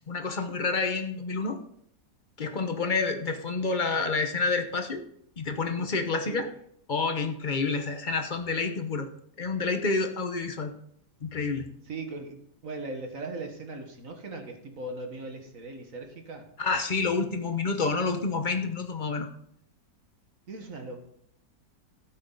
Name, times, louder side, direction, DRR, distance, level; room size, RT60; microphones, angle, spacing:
voice 1, 0.1-1.6 2.4-5.0 5.4-6.5 6.9-9.1 9.4-10.7 11.2-11.7 16.6-19.3, left 4 dB, 35° left, 6 dB, 0.9 m, -28 dB
voice 2, 11.9-16.5 20.5-21.0, right 2 dB, 50° right, 4 dB, 1.9 m, -39 dB
12.5 x 8.8 x 3.9 m, 0.68 s
omnidirectional pair, 1.9 m